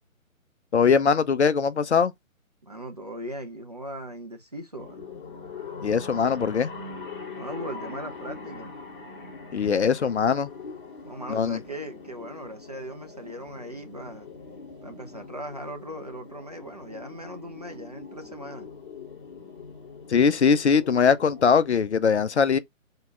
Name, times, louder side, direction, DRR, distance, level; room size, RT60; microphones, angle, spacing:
voice 1, 0.7-2.1 5.8-6.7 9.5-10.5 11.3-11.6 20.1-22.6, left 6 dB, 55° left, 0.5 m, -21 dB
voice 2, 2.6-5.1 7.3-8.8 11.0-14.3 14.8-18.7, right 1 dB, 30° right, 0.4 m, -39 dB
sound 1, 4.8-21.7, left 4 dB, 40° left, 1.4 m, -42 dB
3.6 x 2.8 x 3.2 m
figure-of-eight pair, 140°, 41 cm